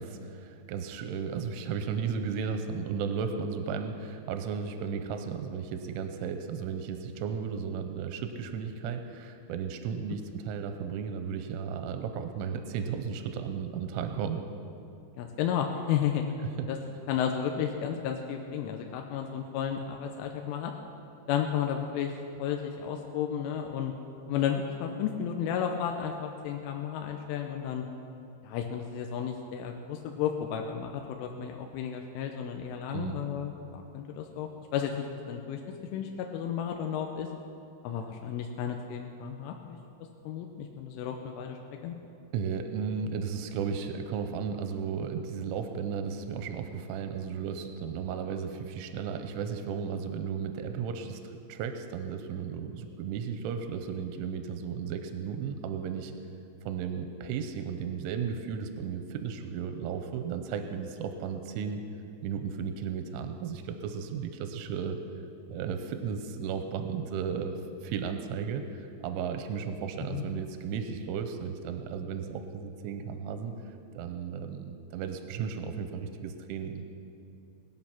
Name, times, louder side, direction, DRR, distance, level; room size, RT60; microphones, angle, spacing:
voice 1, 0.0-14.4 16.6-16.7 32.9-33.2 42.3-56.1 56.7-61.8 62.2-65.0 65.5-73.5 73.9-76.8, right 6 dB, 90° right, 7 dB, 3.2 m, -34 dB
voice 2, 15.2-16.2 16.7-16.8 17.1-20.7 21.3-22.1 22.4-23.9 24.3-27.9 28.4-35.6 35.9-37.3 37.8-39.8 40.2-41.6 41.8-42.0 70.1-70.2, left 8 dB, 85° left, 3 dB, 3.2 m, -33 dB
20.5 x 8.3 x 5.9 m, 2.6 s
omnidirectional pair, 5.7 m